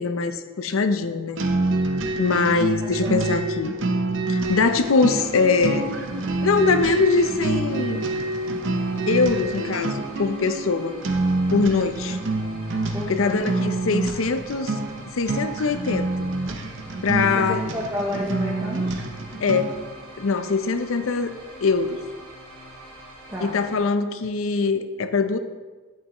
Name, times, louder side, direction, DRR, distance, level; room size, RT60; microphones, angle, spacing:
voice 1, 0.0-1.4 2.2-3.8 4.3-5.9 6.4-8.1 9.1-11.0 11.5-12.2 13.1-14.8 15.1-16.3 17.0-17.7 19.4-19.8 20.2-21.3 21.6-22.0 23.4-25.4, left 4 dB, 85° left, 10 dB, 0.6 m, -22 dB
sound 1, 1.4-19.9, right 2 dB, 70° right, 0.6 m, -27 dB
sound 2, 4.4-23.8, equal, 85° right, 2.2 m, -44 dB
voice 2, 12.9-13.6 17.3-19.0 23.3-23.6, equal, 15° right, -4 dB, 0.7 m, -31 dB
9.4 x 6.7 x 3.0 m, 1.3 s
head